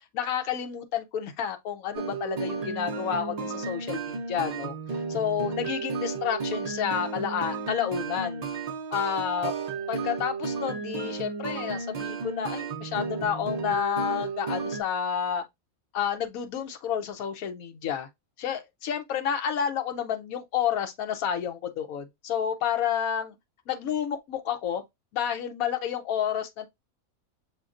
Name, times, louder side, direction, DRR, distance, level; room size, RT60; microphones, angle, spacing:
voice 1, 0.1-4.7 5.1-8.4 8.9-9.5 9.9-15.4 15.9-18.1 18.4-23.4 23.7-24.8 25.1-26.7, left 8 dB, 80° left, 1.2 m, -30 dB
sound 1, 1.9-14.8, right 4 dB, 60° right, 0.4 m, -33 dB
6.6 x 2.8 x 2.4 m
omnidirectional pair, 1.5 m